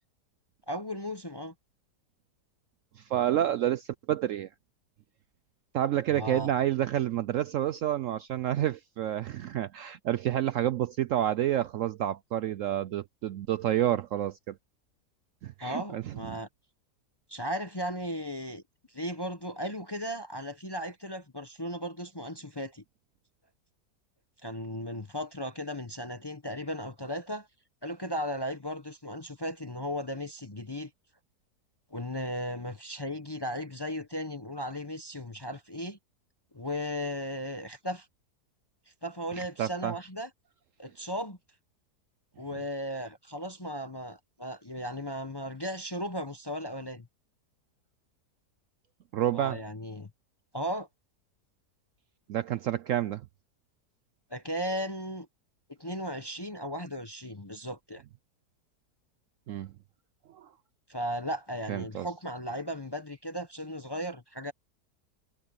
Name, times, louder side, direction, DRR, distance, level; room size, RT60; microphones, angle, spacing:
voice 1, 0.7-1.5 6.1-6.5 15.6-16.5 17.3-18.6 18.9-22.8 24.4-27.5 27.8-30.9 31.9-36.0 36.5-38.1 39.0-40.3 40.8-41.4 42.4-47.1 49.3-50.1 50.5-50.9 54.3-55.3 55.7-58.0 60.9-64.5, equal, 20° left, 0.7 m, -36 dB
voice 2, 3.0-4.5 5.7-14.5 15.4-16.4 39.4-39.9 49.1-49.6 52.3-53.2 59.5-59.7 60.3-60.5 61.7-62.1, right 12 dB, 70° right, 0.8 m, -29 dB
omnidirectional pair, 1.7 m